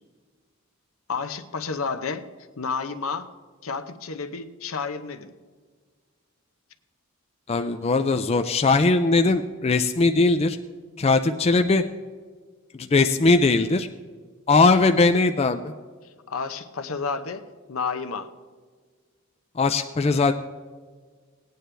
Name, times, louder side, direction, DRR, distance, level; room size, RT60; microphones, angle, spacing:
voice 1, 1.1-2.3 2.6-3.3 3.6-5.3 16.3-17.4 17.7-18.3, left 5 dB, 75° left, 9 dB, 0.8 m, -30 dB
voice 2, 7.5-10.6 11.0-11.8 12.7-13.9 14.5-15.7 19.6-20.3, left 3 dB, 30° left, 7 dB, 0.4 m, -20 dB
18.0 x 9.3 x 3.4 m, 1.5 s
head